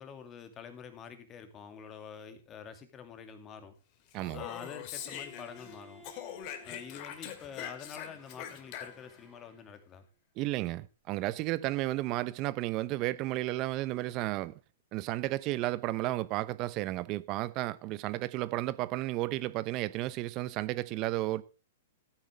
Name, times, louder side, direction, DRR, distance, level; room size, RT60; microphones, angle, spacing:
voice 1, 0.0-3.7 4.3-6.0 6.6-10.0, left 7 dB, 25° left, 2.2 m, -47 dB
Speech, 4.1-5.8 6.0-9.2, left 10 dB, 45° left, 2.1 m, -43 dB
Bowed string instrument, 4.9-9.8, equal, 5° right, 4.7 m, -57 dB
voice 2, 10.4-14.6 14.9-21.4, right 17 dB, 40° right, 0.8 m, -33 dB
13.5 x 9.1 x 3.4 m
hypercardioid pair, 120°, 0 cm